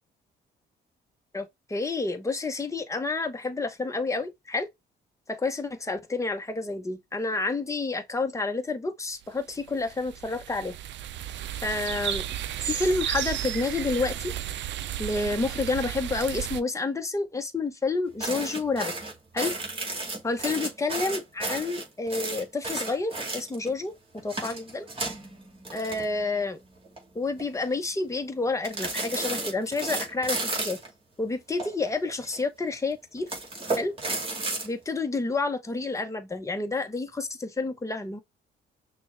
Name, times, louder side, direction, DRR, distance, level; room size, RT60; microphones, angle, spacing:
voice 1, 1.3-4.7 5.3-10.8 11.6-12.2 12.6-14.3 15.0-18.9 19.3-19.5 20.2-23.9 24.2-24.9 25.7-26.6 27.1-30.8 31.2-33.3 33.8-33.9 34.6-38.2, left 3 dB, 15° left, 1.0 m, -29 dB
sound 1, 9.5-16.6, right 12 dB, 65° right, 0.5 m, -33 dB
sound 2, 18.2-23.7 24.2-26.5 26.8-27.0 27.4-27.8 28.6-30.9 31.6-32.4 33.2-34.7, right 2 dB, 25° right, 2.2 m, -33 dB
6.1 x 2.4 x 3.1 m
cardioid pair, 90°, 20 cm